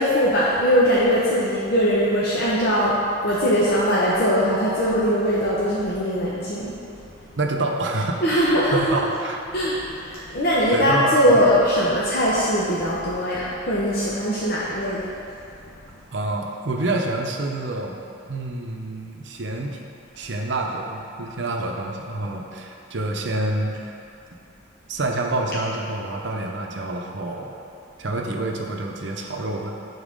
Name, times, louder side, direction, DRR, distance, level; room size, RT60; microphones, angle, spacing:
voice 1, 0.0-3.0 3.2-6.8 8.2-9.0 9.5-15.1, equal, 50° left, -8 dB, 0.9 m, -21 dB
voice 2, 7.4-9.4 10.7-11.3 16.1-18.0 18.3-19.8 20.2-23.9 24.9-27.6 28.0-29.7, right 2 dB, 60° right, 1 dB, 0.7 m, -27 dB
7.2 x 4.0 x 5.2 m, 2.6 s
head